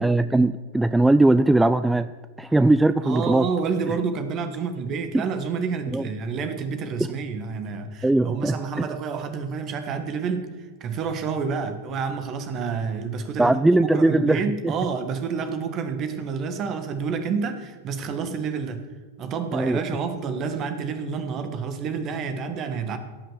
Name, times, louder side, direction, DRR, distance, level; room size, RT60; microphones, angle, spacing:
voice 1, 0.0-2.1 2.4-3.5 5.1-5.2 5.9-6.0 8.0-8.8 13.4-14.7 19.5-19.8, right 2 dB, 5° right, 12 dB, 0.3 m, -20 dB
voice 2, 3.0-10.5 10.8-18.9 19.2-23.0, right 5 dB, 35° right, 9 dB, 1.4 m, -29 dB
17.0 x 5.9 x 7.3 m, 1.4 s
figure-of-eight pair, 90°, 0 cm